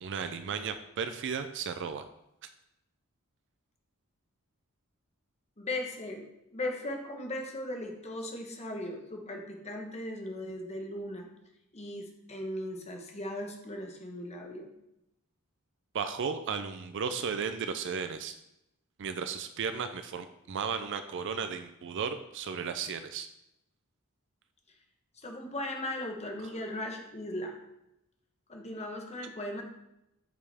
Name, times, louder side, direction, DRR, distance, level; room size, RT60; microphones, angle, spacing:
voice 1, 0.0-2.0 15.9-18.3 19.0-23.3 26.4-26.5, right 6 dB, 55° right, 9 dB, 0.4 m, -35 dB
voice 2, 5.6-6.2 6.5-11.3 11.7-14.7 25.2-27.6 28.5-29.6, left 1 dB, 30° left, 2 dB, 1.1 m, -38 dB
8.6 x 5.4 x 3.5 m, 0.85 s
head